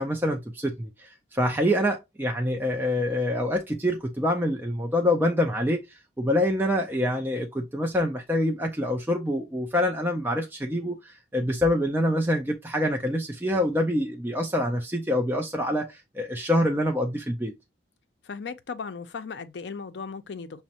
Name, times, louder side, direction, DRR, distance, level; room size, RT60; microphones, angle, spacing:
voice 1, 0.0-17.5, left 1 dB, 10° right, 0.4 m, -26 dB
voice 2, 18.2-20.6, left 5 dB, 70° left, 0.5 m, -36 dB
6.0 x 2.1 x 2.8 m
head